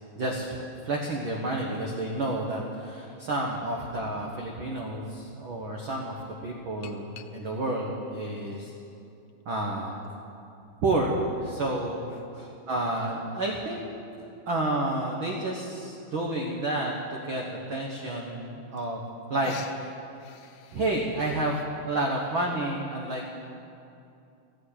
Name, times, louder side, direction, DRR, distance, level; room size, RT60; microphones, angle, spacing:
voice 1, 0.2-0.5 0.8-6.1 6.4-8.7 9.4-10.0 10.8-11.1 11.4-12.1 12.7-13.8 14.2-19.0 19.3-19.9 20.7-21.6 21.8-23.3, right 2 dB, 65° right, -1 dB, 1.3 m, -30 dB
sound 1, 6.8-7.7 8.4-9.4 10.0-10.1 11.3-12.4 14.0-14.1 14.6-14.7 14.9-15.0 15.3-15.7 16.7-16.8 17.3-17.4 18.5-18.6 18.8-19.2 19.4-21.7, left 9 dB, 75° left, 1.7 m, -46 dB
14.0 x 9.7 x 8.8 m, 2.6 s
omnidirectional pair, 4.0 m